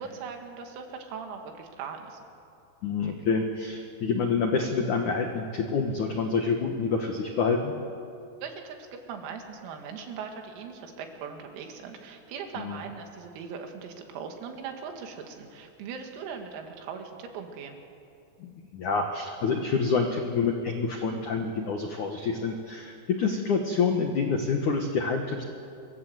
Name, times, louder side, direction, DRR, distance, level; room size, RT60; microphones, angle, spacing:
voice 1, 0.0-2.2 8.4-8.8 9.1-17.8, right 6 dB, 90° right, 4 dB, 5.0 m, -40 dB
voice 2, 2.8-7.7 12.6-12.8 18.4-25.4, left 5 dB, 90° left, 3 dB, 1.7 m, -27 dB
25.5 x 23.5 x 8.0 m, 2.5 s
omnidirectional pair, 6.0 m